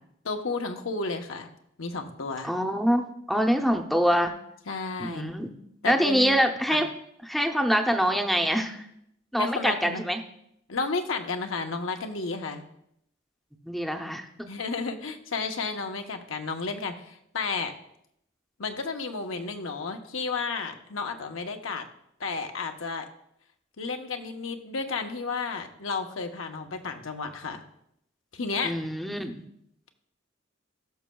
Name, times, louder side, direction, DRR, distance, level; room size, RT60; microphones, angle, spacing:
voice 1, 0.2-1.5 1.8-2.5 4.7-5.4 5.8-6.8 9.4-10.0 10.7-12.6 14.5-17.7 18.6-21.8 22.2-23.1 23.8-27.6 28.3-28.7, left 4 dB, 85° left, 5 dB, 0.9 m, -32 dB
voice 2, 2.4-4.3 5.0-5.5 5.9-6.9 7.3-8.9 9.3-10.2 13.6-14.5 28.6-29.4, equal, ahead, 4 dB, 0.6 m, -25 dB
17.5 x 6.2 x 2.3 m, 0.75 s
head